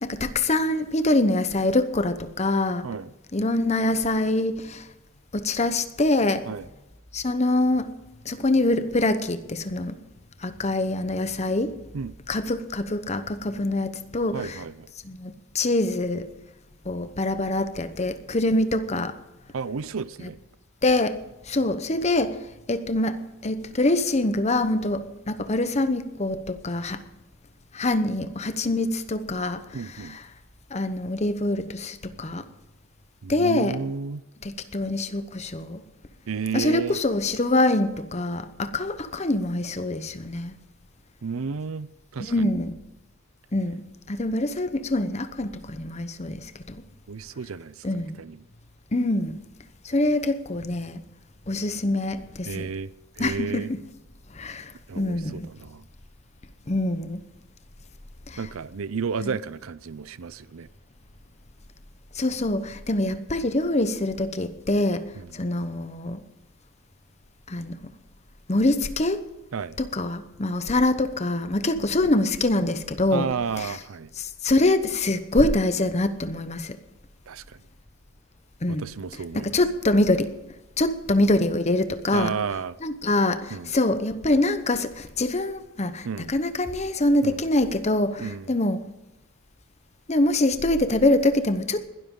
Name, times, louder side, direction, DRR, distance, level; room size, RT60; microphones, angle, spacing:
voice 1, 0.0-2.9 3.3-4.9 5.3-6.4 7.1-8.0 8.2-10.0 10.4-11.8 12.3-14.6 15.0-16.3 16.8-19.1 20.2-20.3 20.8-21.2 21.5-22.4 22.7-27.0 27.7-30.2 30.7-32.4 33.3-33.8 34.4-35.8 36.5-40.6 42.2-42.8 43.5-43.8 44.1-46.8 47.8-48.2 48.9-49.4 49.8-51.0 51.5-52.7 53.2-53.8 54.3-55.5 56.7-57.2 58.3-58.4 59.2-59.3 62.1-65.0 65.3-66.2 67.5-67.9 68.5-69.3 69.8-73.3 73.6-73.8 74.2-76.8 78.6-78.8 79.3-80.3 80.8-82.3 82.8-88.8 90.1-91.9, left 2 dB, 30° left, 0.9 m, -25 dB
voice 2, 14.3-14.9 19.5-20.4 29.7-30.2 33.2-34.2 36.3-37.0 41.2-42.5 47.1-47.9 48.2-48.4 52.4-52.9 53.2-53.7 54.9-55.8 58.4-60.7 65.2-65.3 69.5-69.8 73.1-74.1 77.3-77.6 78.7-79.5 82.1-82.8 83.5-83.7 86.0-86.4 87.2-87.5 88.2-88.5, right 5 dB, 75° right, 0.5 m, -32 dB
21.0 x 12.5 x 3.8 m
head